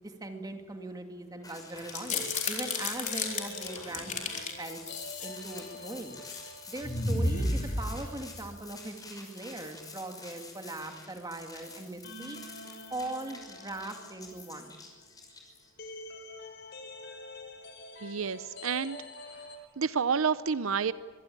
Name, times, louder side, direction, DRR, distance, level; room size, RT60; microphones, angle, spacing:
voice 1, 0.0-4.8 5.2-6.2 6.7-12.4 12.9-14.8, right 2 dB, 20° right, 4 dB, 2.4 m, -40 dB
sound 1, 1.3-8.0 8.3-8.4 12.0-19.6, left 2 dB, 55° left, 4.9 m, -47 dB
sound 2, 1.4-15.9, left 3 dB, 20° left, 5.9 m, -49 dB
sound 3, 1.8-4.5 4.9-5.7 6.1-6.5 6.8-8.4, left 3 dB, 35° left, 4.1 m, -32 dB
voice 2, 18.0-19.0 19.8-20.9, right 6 dB, 80° right, 15 dB, 0.7 m, -29 dB
25.0 x 22.0 x 8.8 m, 1.5 s
head